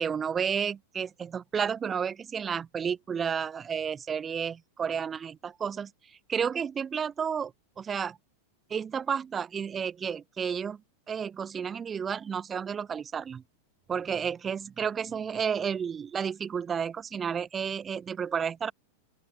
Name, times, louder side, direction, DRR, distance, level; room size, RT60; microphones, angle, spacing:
voice 1, 0.0-5.9 6.3-7.5 7.8-8.2 8.7-10.8 11.1-13.4 13.9-18.7, right 7 dB, 20° right, 1.0 m, -31 dB
open air
figure-of-eight pair, 90°, 0 cm